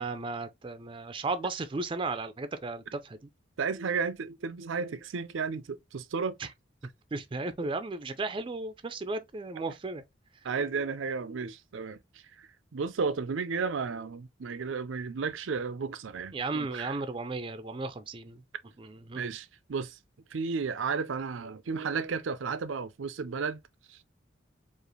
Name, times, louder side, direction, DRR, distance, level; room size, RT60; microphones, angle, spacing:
voice 1, 0.0-3.2 6.4-6.5 7.1-10.0 16.3-18.4 18.8-19.2, right 3 dB, 25° right, 0.4 m, -35 dB
voice 2, 3.6-6.4 10.4-12.0 12.4-16.9 19.2-20.0 20.3-23.6 23.9-24.0, right 5 dB, 85° right, 0.5 m, -33 dB
4.7 x 2.5 x 3.1 m
head